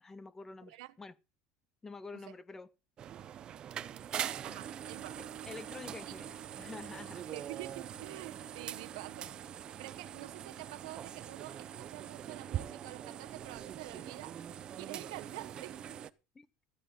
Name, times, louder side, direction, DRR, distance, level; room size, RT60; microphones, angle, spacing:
voice 1, 0.0-1.1 1.8-2.7 4.4-4.6 5.2-7.3 16.3-16.5, left 4 dB, 10° left, 0.6 m, -48 dB
sound 1, 3.0-16.1, right 9 dB, 25° right, 0.7 m, -43 dB
voice 2, 4.4-5.3 6.1-6.2 7.3-9.3 9.8-14.4 14.8-15.8, right 19 dB, 90° right, 0.9 m, -47 dB
14.5 x 13.5 x 3.8 m
cardioid pair, 170°, 3 cm